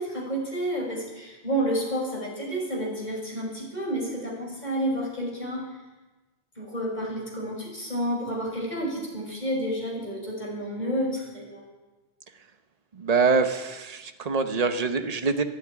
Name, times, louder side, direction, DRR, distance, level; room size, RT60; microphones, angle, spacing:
voice 1, 0.0-5.6 6.6-11.7, right 1 dB, 45° left, -3 dB, 6.0 m, -30 dB
voice 2, 12.9-15.4, right 4 dB, 40° right, 8 dB, 1.1 m, -24 dB
13.0 x 10.0 x 9.8 m, 1.2 s
omnidirectional pair, 1.1 m